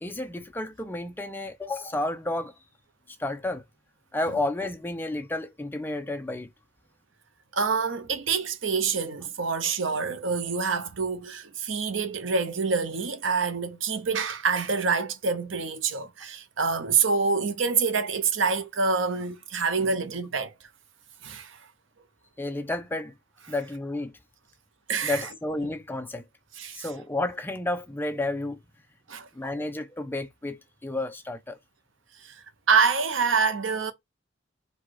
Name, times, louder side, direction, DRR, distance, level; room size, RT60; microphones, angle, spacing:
voice 1, 0.0-2.6 3.2-3.6 4.1-6.5 22.4-23.1 23.5-24.2 25.0-26.2 26.7-28.6 29.3-31.6, left 2 dB, 10° left, 0.5 m, -31 dB
voice 2, 7.5-20.5 21.2-21.6 24.9-25.3 26.6-26.9 29.1-29.3 32.2-33.9, right 5 dB, 70° right, 0.8 m, -26 dB
4.1 x 2.4 x 4.7 m
head